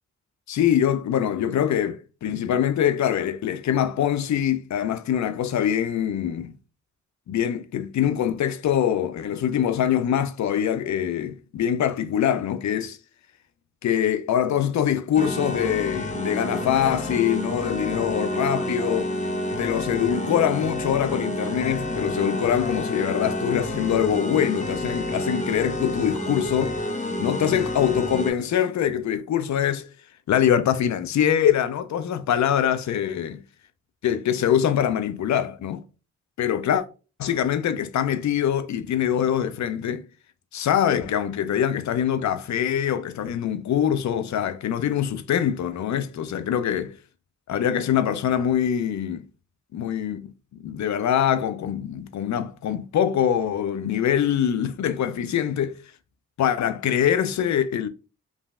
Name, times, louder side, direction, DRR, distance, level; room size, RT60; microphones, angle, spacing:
voice 1, 0.5-6.5 7.3-13.0 13.8-19.1 19.6-26.8 27.2-29.9 30.3-33.4 34.0-35.8 36.4-36.8 37.2-40.0 40.5-47.0 47.5-49.3 49.7-50.3 50.6-55.8 56.4-57.9, left 9 dB, 65° left, 0.5 m, -24 dB
sound 1, 15.1-28.3, left 1 dB, 25° left, 0.7 m, -29 dB
3.0 x 2.6 x 2.3 m
supercardioid pair, 40°, 31 cm